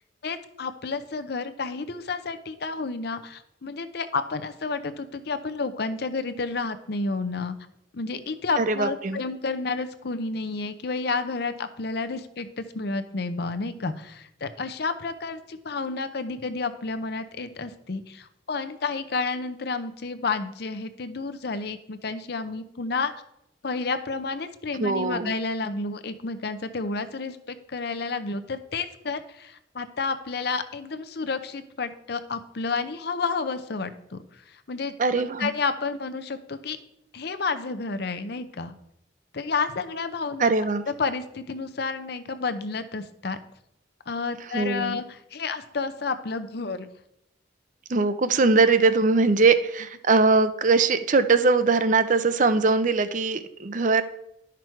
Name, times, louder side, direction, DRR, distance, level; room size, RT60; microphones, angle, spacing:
voice 1, 0.2-7.5 7.9-23.1 23.6-36.8 37.1-38.7 39.3-40.4 41.0-43.4 44.1-46.9, left 4 dB, 60° left, 10 dB, 0.6 m, -30 dB
voice 2, 8.6-9.2 24.8-25.3 35.0-35.5 40.4-40.8 44.5-45.0 47.9-54.0, right 3 dB, 45° right, 11 dB, 0.5 m, -21 dB
11.0 x 6.0 x 4.5 m, 0.80 s
head